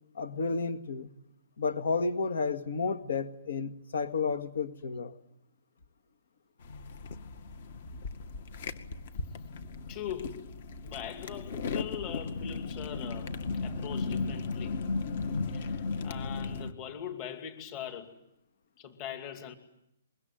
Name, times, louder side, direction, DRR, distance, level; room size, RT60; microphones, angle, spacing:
voice 1, 0.2-1.1 1.6-5.1, left 4 dB, 65° left, 2.0 m, -31 dB
sound 1, 6.6-16.7, left 4 dB, 45° left, 2.1 m, -36 dB
voice 2, 9.9-10.5 10.8-13.3 13.6-14.8 15.5-18.1 18.8-19.5, left 9 dB, 25° left, 2.5 m, -41 dB
25.0 x 22.5 x 9.3 m
hypercardioid pair, 165°, 0 cm